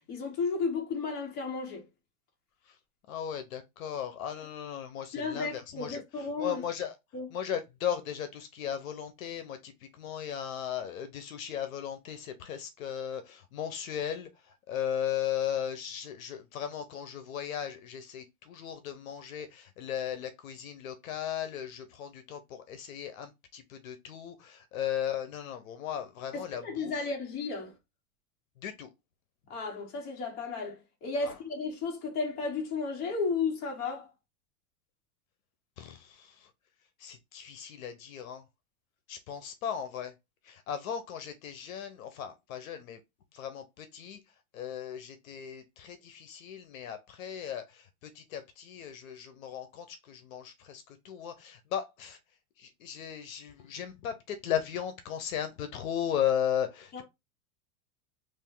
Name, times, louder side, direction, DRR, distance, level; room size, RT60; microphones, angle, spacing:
voice 1, 0.1-1.9 5.1-6.6 7.1-7.3 26.3-27.7 29.5-34.1 56.9-57.0, left 4 dB, 20° left, 1.0 m, -33 dB
voice 2, 3.1-6.9 7.3-27.0 28.6-28.9 31.2-31.4 35.8-36.5 37.0-38.4 39.1-40.1 40.4-43.0 43.3-44.2 44.5-52.2 52.6-57.0, left 9 dB, 65° left, 0.8 m, -36 dB
3.3 x 2.6 x 3.7 m
supercardioid pair, 170°, 44 cm